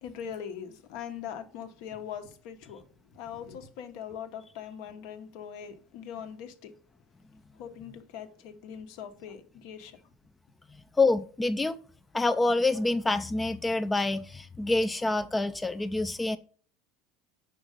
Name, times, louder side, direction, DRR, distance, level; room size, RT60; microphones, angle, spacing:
voice 1, 0.0-2.8 3.1-6.7 7.6-10.0, left 8 dB, 65° left, 1.0 m, -41 dB
voice 2, 11.0-11.8 12.1-16.4, left 2 dB, 10° left, 0.3 m, -27 dB
5.4 x 4.4 x 5.0 m
supercardioid pair, 125°, 0 cm